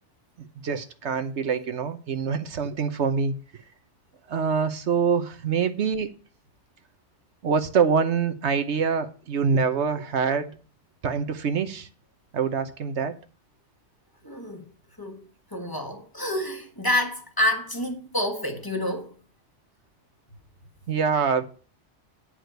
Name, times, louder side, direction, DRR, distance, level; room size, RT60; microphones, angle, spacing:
voice 1, 0.6-3.3 4.3-6.1 7.4-10.5 11.0-11.9 12.3-13.2 20.9-21.4, right 6 dB, 70° right, 1.2 m, -25 dB
voice 2, 14.2-14.7 15.0-15.2 15.5-19.1, left 1 dB, 20° left, 1.5 m, -28 dB
9.7 x 4.9 x 7.8 m
omnidirectional pair, 1.2 m